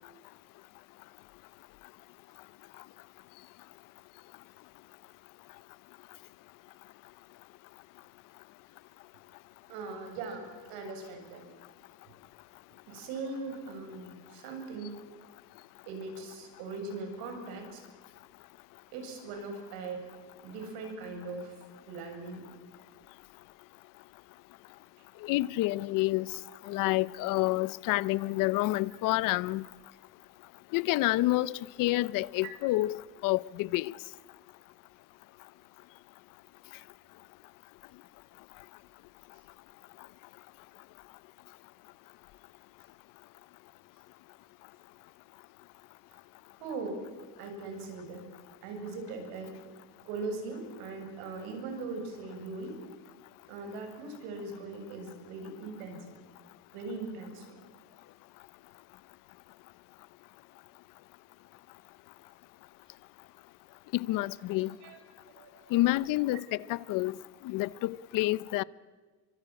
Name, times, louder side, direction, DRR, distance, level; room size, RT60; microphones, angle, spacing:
voice 1, 9.7-11.5 12.9-14.9 15.9-17.8 18.9-20.0 20.4-22.4 46.6-47.0 47.4-48.2 48.6-49.5 50.1-52.8 53.5-56.2 56.7-57.6 64.5-65.0 65.3-65.8, right 3 dB, 85° right, 7.5 m, -40 dB
voice 2, 25.2-26.3 26.7-29.6 30.7-33.9 63.9-64.7 65.7-66.4 66.7-67.1 67.4-68.6, left 18 dB, 65° left, 0.8 m, -28 dB
27.0 x 24.5 x 8.9 m
cardioid pair, 150°, 36 cm